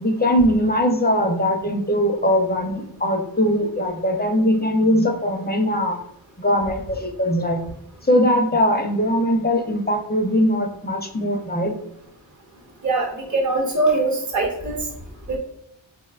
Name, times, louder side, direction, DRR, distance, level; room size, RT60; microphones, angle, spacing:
voice 1, 0.0-6.0 6.4-7.6 8.0-11.7, equal, 20° left, 3 dB, 0.5 m, -20 dB
voice 2, 12.8-14.8 15.3-15.4, right 2 dB, 40° right, 0 dB, 0.9 m, -22 dB
4.6 x 2.1 x 2.4 m, 0.76 s
wide cardioid pair, 60°, 46 cm